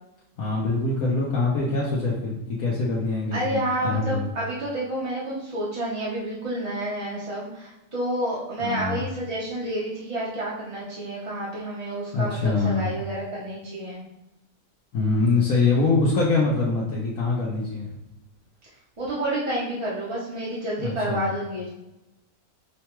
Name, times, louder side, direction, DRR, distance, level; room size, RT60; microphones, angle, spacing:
voice 1, 0.4-4.3 8.6-9.0 12.1-12.9 14.9-17.9 20.8-21.2, left 3 dB, 75° left, -5 dB, 1.2 m, -24 dB
voice 2, 3.3-14.0 19.0-21.7, right 1 dB, 30° right, -6 dB, 0.6 m, -29 dB
5.5 x 2.2 x 3.0 m, 0.92 s
omnidirectional pair, 1.5 m